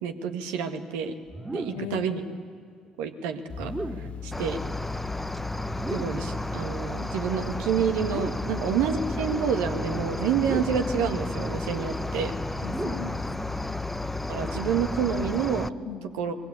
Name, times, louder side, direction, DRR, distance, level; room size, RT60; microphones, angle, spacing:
voice 1, 0.0-1.1 1.5-2.2 3.0-3.7 4.0-4.6 5.9-12.3 14.3-15.7 16.2-16.4, right 7 dB, 70° right, 6 dB, 1.7 m, -28 dB
sound 1, 1.3-2.0 3.5-4.3 5.6-6.4 7.9-8.6 10.3-11.0 12.5-13.3, right 2 dB, 15° right, 2.6 m, -35 dB
voice 2, 1.7-2.3 8.5-8.6 12.6-13.7 15.8-16.1, left 13 dB, 75° left, 7 dB, 1.4 m, -39 dB
sound 2, 3.5-15.4, left 10 dB, 45° left, 0.7 m, -39 dB
Cricket, 4.3-15.7, left 1 dB, 5° left, 0.8 m, -33 dB
25.5 x 22.0 x 8.4 m, 2.1 s
figure-of-eight pair, 50°, 3 cm